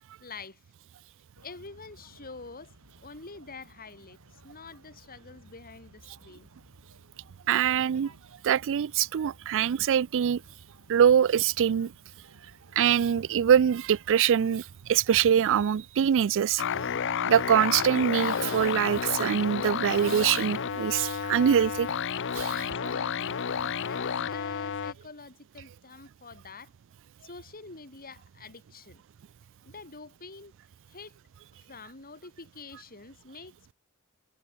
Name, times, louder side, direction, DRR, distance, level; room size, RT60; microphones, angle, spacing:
voice 1, 0.2-0.6 1.4-2.7 3.0-6.5 22.5-23.3 23.7-26.7 27.2-29.0 29.6-30.5 30.9-31.2 31.7-33.7, left 4 dB, 40° left, 3.9 m, -46 dB
sound 1, 1.3-15.9, right 1 dB, 90° right, 6.7 m, -57 dB
voice 2, 7.5-8.1 8.4-10.4 10.9-11.9 12.8-14.6 14.9-16.6 17.2-21.9 22.4-22.5, right 8 dB, 60° right, 0.4 m, -23 dB
sound 2, 16.6-24.9, left 7 dB, 55° left, 0.7 m, -31 dB
head